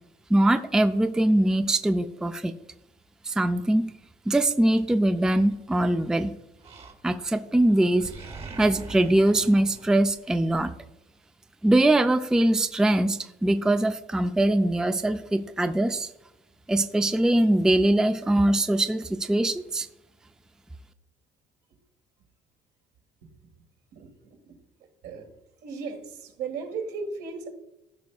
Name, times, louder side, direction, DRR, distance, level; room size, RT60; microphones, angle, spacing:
voice 1, 0.3-2.5 3.2-3.9 4.3-6.4 7.0-8.1 8.6-10.7 11.6-16.1 16.7-19.9, right 1 dB, 5° right, 0.4 m, -22 dB
Animal, 5.3-6.1 6.6-7.4 7.7-10.6, right 4 dB, 40° right, 1.2 m, -44 dB
voice 2, 23.9-24.6 25.0-25.3 25.6-27.5, right 5 dB, 80° right, 1.7 m, -36 dB
14.5 x 5.6 x 2.3 m
cardioid pair, 110°, 17 cm